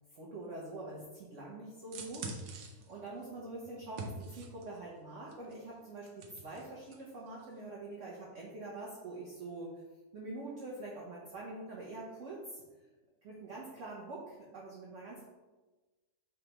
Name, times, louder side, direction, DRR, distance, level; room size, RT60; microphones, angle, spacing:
voice 1, 0.1-2.3 2.9-9.7 10.1-12.6 13.2-15.3, right 2 dB, 55° right, -4 dB, 0.9 m, -45 dB
sound 1, 1.8-4.8 5.3-7.0 7.3-7.4, right 3 dB, 80° right, 1.3 m, -45 dB
5.1 x 3.3 x 2.9 m, 1.2 s
omnidirectional pair, 1.9 m